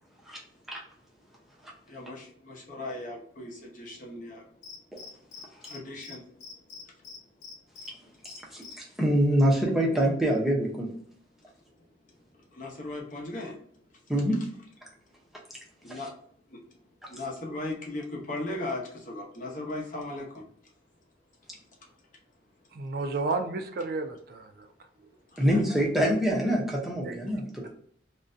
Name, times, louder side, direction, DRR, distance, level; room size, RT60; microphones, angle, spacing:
voice 1, 1.9-4.4 5.7-6.2 12.5-13.5 15.8-16.1 16.5-16.6 17.0-20.4 25.3-26.1 27.6-27.7, left 2 dB, 45° left, -2 dB, 0.7 m, -37 dB
Cricket, 4.6-5.8 6.0-6.1 6.4-7.9 8.2-8.7, left 6 dB, 80° left, 0.6 m, -44 dB
voice 2, 8.5-10.9 14.1-14.5 15.9-16.0 25.4-27.7, equal, ahead, -3 dB, 0.5 m, -25 dB
voice 3, 22.7-24.7 27.0-27.1, right 3 dB, 55° right, 5 dB, 0.3 m, -32 dB
2.5 x 2.1 x 2.4 m, 0.62 s
head